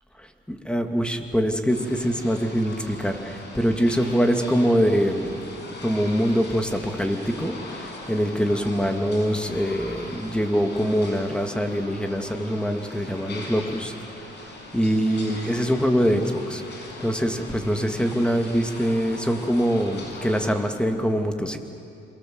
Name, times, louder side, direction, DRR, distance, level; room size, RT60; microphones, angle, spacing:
voice 1, 0.5-5.5 5.8-13.9 14.7-21.6, equal, 5° left, 5 dB, 2.4 m, -24 dB
sound 1, 1.7-20.5, left 2 dB, 60° left, 6.2 m, -40 dB
28.0 x 23.5 x 7.9 m, 2.6 s
cardioid pair, 90°, 20 cm